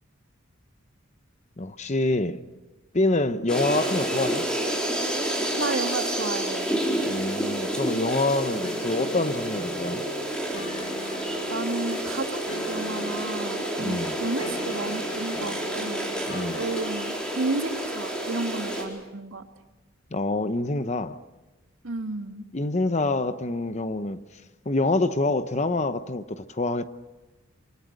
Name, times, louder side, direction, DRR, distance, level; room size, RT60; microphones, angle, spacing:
voice 1, 1.6-2.4 2.9-4.4 7.1-10.1 13.8-14.2 16.3-16.6 20.1-21.2 22.5-24.2 24.7-26.9, left 2 dB, 35° left, 0.9 m, -26 dB
sound 1, 3.5-18.8, right 1 dB, 5° left, 4.3 m, -29 dB
voice 2, 5.6-6.8 11.0-11.1 11.5-16.1 16.5-19.5 21.8-22.5, right 3 dB, 80° right, 1.9 m, -32 dB
sound 2, 8.6-18.7, left 2 dB, 75° left, 2.0 m, -43 dB
27.0 x 23.5 x 6.6 m
head